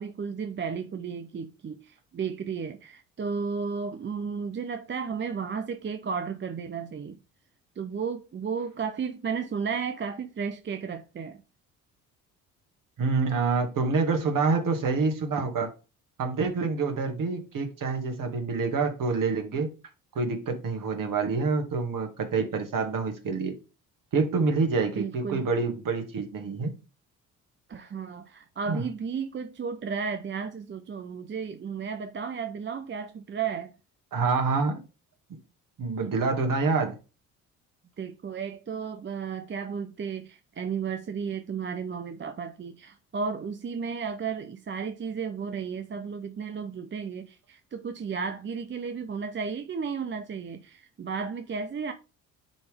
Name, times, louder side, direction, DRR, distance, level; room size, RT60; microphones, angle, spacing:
voice 1, 0.0-7.2 7.8-11.4 25.0-25.5 27.7-33.7 38.0-51.9, right 6 dB, 30° right, 0.7 m, -33 dB
voice 2, 13.0-15.7 16.2-19.7 20.2-23.6 24.1-26.7 28.7-28.8 34.1-34.8 35.8-37.0, right 4 dB, 50° right, 2.1 m, -27 dB
9.9 x 3.4 x 3.5 m
hypercardioid pair, 50°, 41 cm